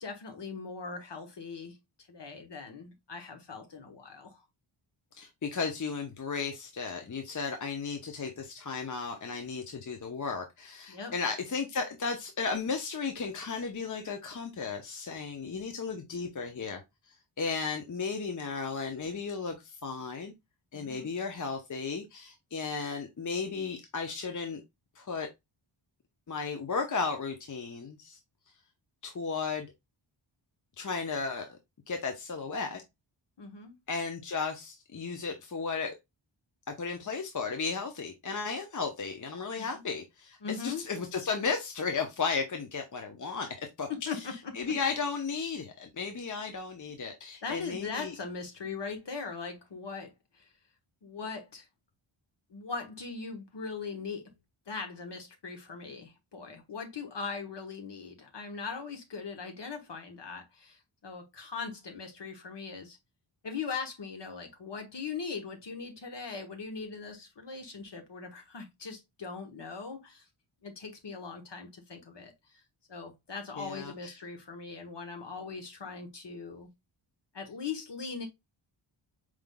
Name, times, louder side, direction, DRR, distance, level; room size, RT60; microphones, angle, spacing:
voice 1, 0.0-1.8 2.1-4.4 10.9-11.1 20.7-21.1 33.4-33.8 39.6-39.8 40.4-40.9 43.9-44.8 47.4-50.5 51.0-51.7 52.5-54.3 54.7-63.0 63.4-70.2 70.6-72.6 72.9-76.7 77.3-78.3, left 5 dB, 55° left, 1.3 m, -40 dB
voice 2, 5.2-16.8 17.1-20.3 20.7-24.6 25.0-25.3 26.3-28.2 29.0-29.7 30.8-31.6 31.9-32.8 33.9-35.9 36.7-43.5 43.8-43.9 44.5-48.1 73.6-74.2, left 5 dB, 40° left, 0.7 m, -34 dB
4.8 x 3.7 x 2.2 m
wide cardioid pair, 90°, 49 cm